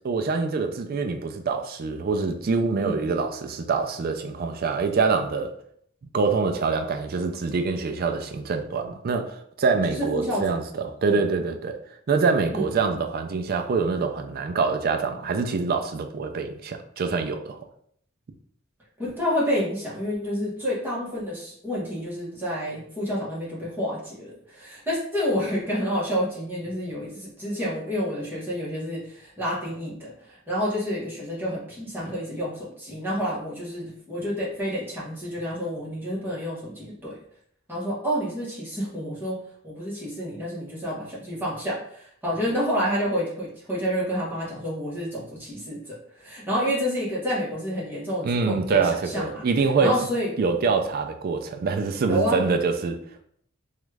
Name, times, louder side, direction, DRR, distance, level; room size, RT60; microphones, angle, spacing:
voice 1, 0.0-5.5 6.1-11.8 12.1-17.6 48.2-50.0 50.4-53.0, right 4 dB, 45° right, 0.4 m, -25 dB
voice 2, 9.8-10.5 11.1-11.2 12.5-12.7 19.0-37.2 37.7-49.4 49.8-50.4 52.1-52.4, equal, 10° right, 1.1 m, -29 dB
3.0 x 2.4 x 3.2 m
head